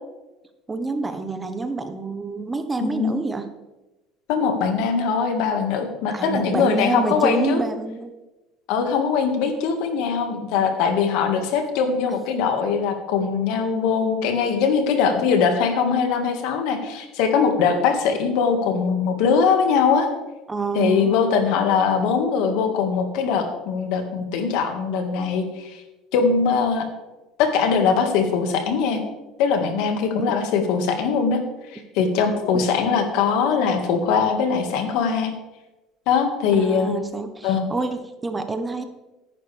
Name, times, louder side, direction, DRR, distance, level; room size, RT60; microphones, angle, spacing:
voice 1, 0.7-3.4 6.1-8.1 20.5-21.4 30.2-30.3 32.5-32.7 36.6-38.8, right 3 dB, 15° right, 7 dB, 1.0 m, -27 dB
voice 2, 2.8-3.1 4.3-7.6 8.7-20.1 20.8-25.7 26.1-26.9 27.4-29.0 29.4-31.4 31.7-35.3 36.1-36.9 37.4-37.7, left 6 dB, 75° left, 5 dB, 1.8 m, -21 dB
14.0 x 10.5 x 3.4 m, 1.0 s
cardioid pair, 120°, 0 cm